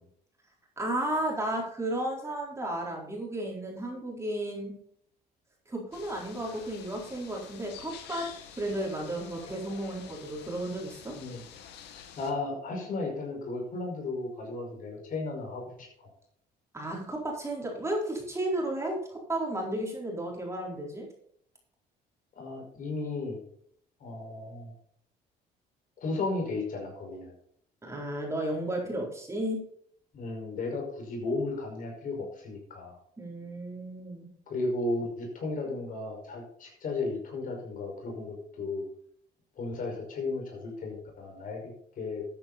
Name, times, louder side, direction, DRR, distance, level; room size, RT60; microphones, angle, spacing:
voice 1, 0.8-4.7 5.7-8.3 8.6-11.1 16.7-21.1 27.8-29.6 33.2-34.3, right 1 dB, 15° right, -1 dB, 4.2 m, -33 dB
sound 1, 5.9-12.3, left 8 dB, 80° left, 1.9 m, -48 dB
voice 2, 12.2-16.1 22.4-23.4 24.0-24.7 26.0-27.3 30.1-33.0 34.5-38.8 39.6-41.6 42.0-42.2, left 3 dB, 55° left, 1 dB, 5.5 m, -34 dB
13.0 x 9.1 x 4.3 m, 0.64 s
cardioid pair, 110°, 17 cm